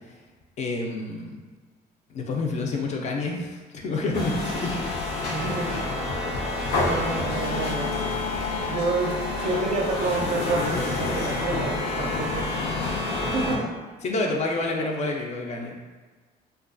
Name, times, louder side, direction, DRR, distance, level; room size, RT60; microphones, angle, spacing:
voice 1, 0.6-1.4 2.1-4.8 14.0-15.7, left 2 dB, 40° left, 1 dB, 0.4 m, -28 dB
sound 1, 4.1-13.6, left 3 dB, 90° left, 0.6 m, -28 dB
voice 2, 5.3-5.8 6.8-8.0 8.7-12.5 13.3-13.7, right 3 dB, 45° right, 1 dB, 0.4 m, -29 dB
2.4 x 2.3 x 2.5 m, 1.4 s
cardioid pair, 110°, 17 cm